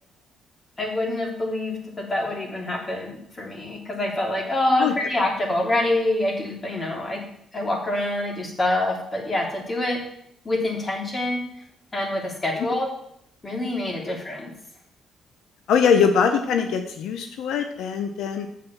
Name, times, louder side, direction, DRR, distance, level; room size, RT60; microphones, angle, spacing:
voice 1, 0.8-7.2 7.5-10.0 10.4-11.4 11.9-12.9 13.4-14.5, left 1 dB, 30° left, 1 dB, 3.1 m, -26 dB
voice 2, 15.7-18.5, left 6 dB, 80° left, 7 dB, 0.8 m, -22 dB
7.7 x 7.1 x 7.0 m, 0.73 s
cardioid pair, 90°, 0 cm